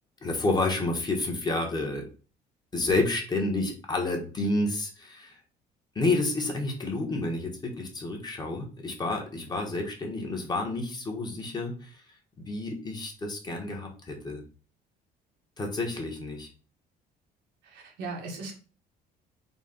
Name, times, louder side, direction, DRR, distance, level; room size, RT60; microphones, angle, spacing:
voice 1, 0.2-2.1 2.7-5.4 5.9-12.0 12.4-14.4 15.6-16.5, left 2 dB, 25° left, 1 dB, 1.0 m, -30 dB
voice 2, 17.6-18.5, right 3 dB, 90° right, 0 dB, 1.3 m, -38 dB
4.0 x 2.3 x 3.7 m, 0.37 s
cardioid pair, 110°, 17 cm